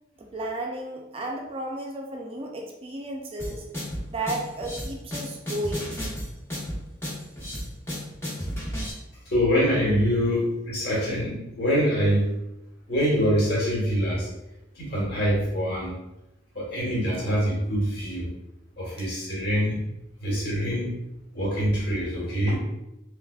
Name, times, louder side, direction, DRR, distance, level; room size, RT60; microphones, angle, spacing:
voice 1, 0.2-3.6 4.1-6.0 19.0-19.1, right 1 dB, 30° right, 0 dB, 0.4 m, -33 dB
sound 1, 3.4-8.9, equal, 15° left, 0.9 m, -33 dB
voice 2, 9.3-12.3 12.9-14.3 14.7-15.9 16.5-18.3 18.8-19.8 20.2-20.9 21.3-22.6, equal, 55° left, -4 dB, 1.3 m, -24 dB
3.3 x 3.2 x 2.3 m, 0.90 s
head